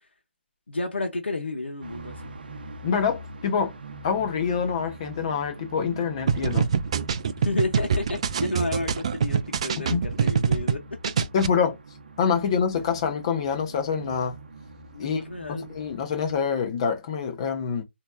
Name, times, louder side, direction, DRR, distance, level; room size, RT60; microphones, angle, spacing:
voice 1, 0.7-2.3 7.4-11.1 14.9-15.7, left 2 dB, 70° left, 1.1 m, -31 dB
sound 1, 1.8-16.4, right 2 dB, 50° right, 0.7 m, -43 dB
voice 2, 2.8-3.7 4.0-6.7 9.9-10.0 11.3-11.8 12.2-14.4 15.0-15.2 15.5-17.8, left 6 dB, 25° left, 0.9 m, -26 dB
sound 2, 6.3-10.8 11.0-11.5, right 6 dB, 30° right, 0.3 m, -24 dB
4.2 x 2.9 x 2.3 m
figure-of-eight pair, 150°, 6 cm